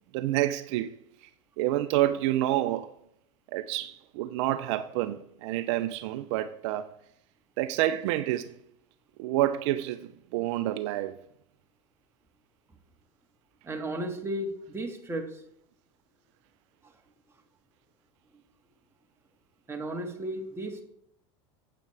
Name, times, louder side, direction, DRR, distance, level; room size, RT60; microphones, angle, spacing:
voice 1, 0.1-0.9 1.2-1.3 1.6-2.9 3.5-6.9 7.6-8.6 9.2-11.1, right 14 dB, 70° right, 0.5 m, -28 dB
voice 2, 13.6-15.4 19.7-20.8, right 1 dB, 15° right, 1.8 m, -34 dB
9.1 x 8.6 x 3.3 m
supercardioid pair, 100°, 16 cm